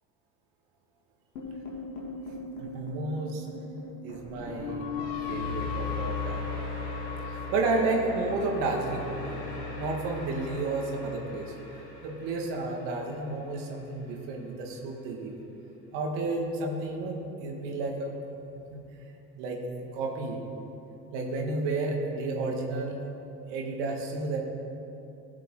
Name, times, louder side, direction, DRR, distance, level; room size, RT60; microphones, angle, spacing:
sound 1, 1.4-13.6, left 4 dB, 85° left, 2.3 m, -37 dB
voice 1, 2.6-3.5 4.0-4.8 5.2-6.4 7.3-9.3 9.8-11.5 12.0-15.4 15.9-18.1 18.7-18.8 19.3-19.6 19.9-20.4 21.1-23.0 23.5-24.4, right 3 dB, 65° right, 1 dB, 1.7 m, -31 dB
15.0 x 7.4 x 3.8 m, 2.8 s
hypercardioid pair, 70°, 46 cm